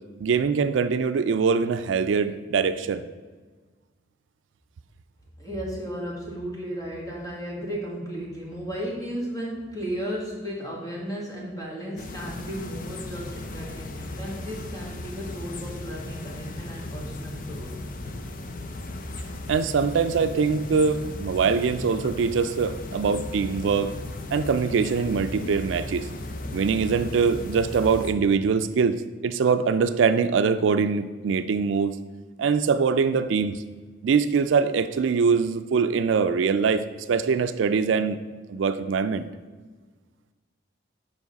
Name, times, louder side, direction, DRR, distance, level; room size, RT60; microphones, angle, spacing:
voice 1, 0.2-3.0 19.5-24.0 24.3-26.1 26.5-32.0 32.4-33.6 34.0-38.2 38.5-39.3, right 5 dB, 80° right, 11 dB, 0.4 m, -23 dB
voice 2, 5.4-17.8, equal, 20° left, -4 dB, 1.7 m, -34 dB
sound 1, 12.0-28.1, left 2 dB, 45° left, 0.5 m, -36 dB
7.2 x 5.3 x 4.0 m, 1.4 s
head